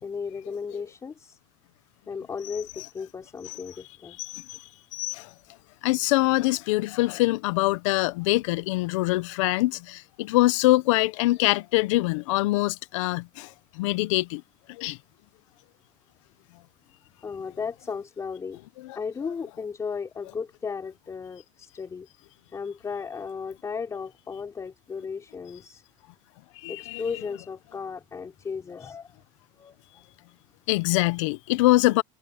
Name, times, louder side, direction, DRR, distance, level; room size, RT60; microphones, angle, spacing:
voice 1, 0.0-1.4 2.1-4.2 17.2-18.6 18.9-22.1 22.5-25.8 26.7-29.2 29.5-29.8, left 5 dB, 20° left, 3.7 m, -35 dB
voice 2, 4.2-5.3 5.8-14.4 14.7-15.0 18.8-19.0 26.6-27.0 30.7-32.0, left 19 dB, 85° left, 0.8 m, -24 dB
cardioid pair, 145°, 16 cm